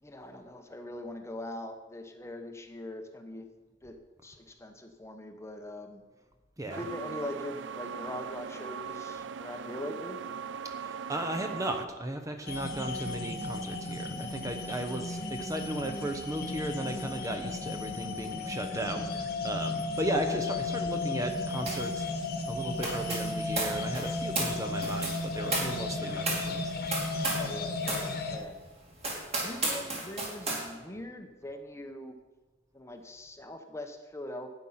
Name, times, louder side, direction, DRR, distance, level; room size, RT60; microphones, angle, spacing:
voice 1, 0.0-3.5 3.8-6.0 6.6-10.2 27.4-28.6 29.3-32.2 32.7-34.5, left 1 dB, 15° left, 6 dB, 0.9 m, -42 dB
voice 2, 6.6-6.9 10.6-22.1 22.5-26.7, right 1 dB, 20° right, 6 dB, 0.9 m, -36 dB
sound 1, 6.7-11.9, right 6 dB, 75° right, 0.4 m, -39 dB
sound 2, 12.5-28.4, left 2 dB, 55° left, 1.3 m, -34 dB
sound 3, 21.7-21.9 22.2-27.5 27.8-28.1 28.5-28.6 29.0-30.6, right 2 dB, 35° right, 3.0 m, -34 dB
12.0 x 9.0 x 5.7 m, 1.2 s
head